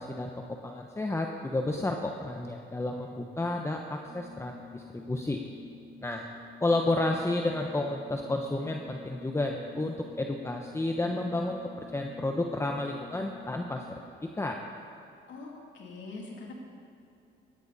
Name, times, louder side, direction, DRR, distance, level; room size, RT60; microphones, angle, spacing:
voice 1, 0.0-5.4 6.0-6.3 6.6-13.8 14.2-14.6, left 2 dB, 15° left, 2 dB, 1.0 m, -31 dB
Organ, 4.0-14.3, left 4 dB, 40° right, 2.3 m, -50 dB
voice 2, 15.3-16.5, left 3 dB, 70° left, -1 dB, 3.0 m, -43 dB
17.5 x 14.0 x 4.2 m, 2.7 s
cardioid pair, 90°, 20 cm